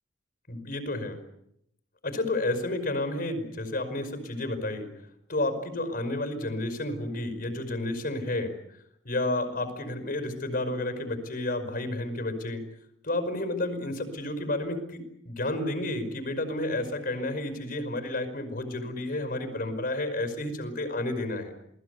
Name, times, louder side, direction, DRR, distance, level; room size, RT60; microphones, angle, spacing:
voice 1, 0.5-1.2 2.0-4.9 5.3-8.5 9.1-12.6 13.0-21.5, left 2 dB, 55° left, 8 dB, 5.4 m, -31 dB
28.5 x 20.0 x 8.3 m, 0.74 s
head